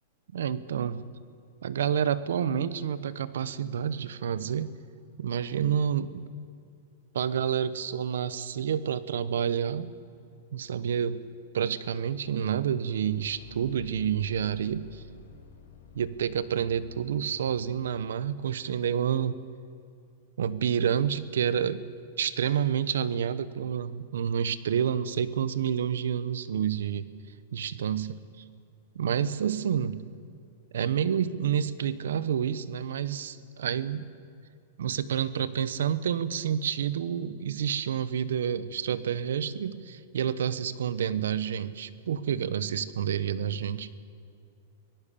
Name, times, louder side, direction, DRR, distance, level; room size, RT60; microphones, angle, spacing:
voice 1, 0.3-1.0 1.6-4.7 5.2-6.2 7.1-9.9 10.5-11.3 11.5-15.0 15.9-19.4 20.4-21.8 22.2-27.1 27.5-28.2 28.9-30.0 30.7-34.0 34.8-43.9, right 8 dB, 90° right, 16 dB, 1.1 m, -29 dB
sound 1, 13.1-18.4, left 6 dB, 85° left, 6.8 m, -52 dB
24.0 x 18.0 x 6.9 m, 2.4 s
supercardioid pair, 165°, 0 cm